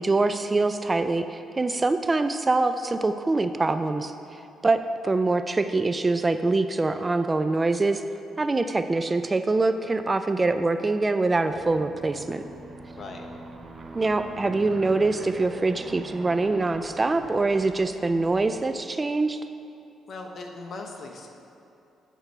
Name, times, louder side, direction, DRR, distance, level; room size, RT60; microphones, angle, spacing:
voice 1, 0.0-4.1 4.6-8.0 8.4-12.4 13.9-19.4, right 3 dB, 25° right, 9 dB, 0.3 m, -24 dB
Aircraft, 11.5-18.8, right 3 dB, 40° right, 0.8 m, -42 dB
voice 2, 13.0-13.3 20.1-21.3, left 3 dB, 50° left, 2 dB, 1.0 m, -39 dB
8.0 x 4.5 x 6.7 m, 2.7 s
cardioid pair, 90°, 0 cm